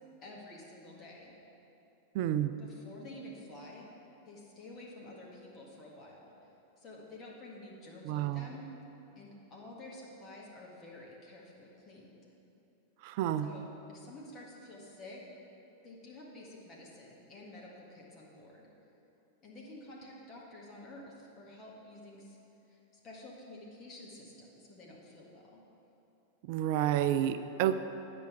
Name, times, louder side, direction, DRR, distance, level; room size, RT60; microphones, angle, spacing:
voice 1, 0.2-1.3 2.6-3.9 4.3-6.3 6.8-8.7 9.1-12.2 13.4-15.2 15.8-18.7 19.4-22.4 22.7-22.8 23.0-25.6, left 1 dB, 30° left, -3 dB, 1.6 m, -50 dB
voice 2, 2.1-2.5 8.0-8.5 13.0-13.5 26.5-27.7, right 11 dB, 45° right, 11 dB, 0.4 m, -30 dB
10.5 x 5.3 x 6.0 m, 2.9 s
figure-of-eight pair, 90°, 0 cm